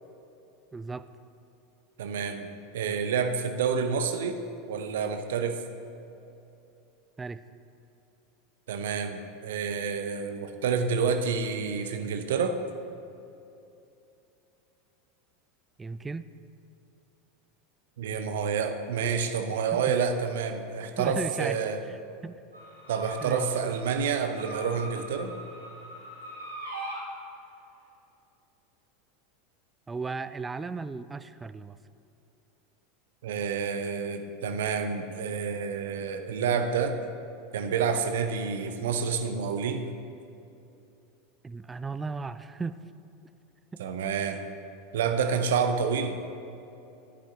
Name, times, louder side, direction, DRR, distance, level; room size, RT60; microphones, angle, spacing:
voice 1, 0.7-1.1 7.2-7.4 15.8-16.3 19.7-20.0 21.0-21.6 21.8-22.4 23.2-23.7 29.9-31.8 41.4-42.8 43.7-43.8, right 4 dB, 15° right, 14 dB, 0.4 m, -36 dB
voice 2, 2.0-2.5 2.7-4.4 4.7-5.6 8.7-12.6 18.0-21.8 22.9-25.3 33.2-37.0 37.5-39.9 43.8-44.4 44.9-46.2, right 6 dB, 65° right, 7 dB, 0.8 m, -28 dB
sound 1, 22.5-27.0, right 1 dB, 90° right, 2.8 m, -41 dB
15.5 x 10.0 x 2.9 m, 2.8 s
figure-of-eight pair, 80°, 0 cm